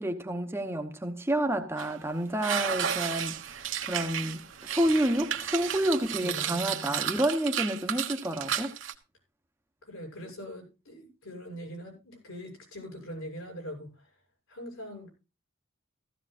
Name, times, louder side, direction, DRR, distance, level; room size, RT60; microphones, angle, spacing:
voice 1, 0.0-8.7, right 1 dB, 10° right, 0.9 m, -29 dB
sound 1, 1.8-1.9 2.4-8.9, right 9 dB, 65° right, 1.2 m, -33 dB
voice 2, 6.2-7.2 9.9-14.1 14.5-15.1, equal, 80° left, 8.0 m, -42 dB
15.5 x 15.0 x 2.5 m
head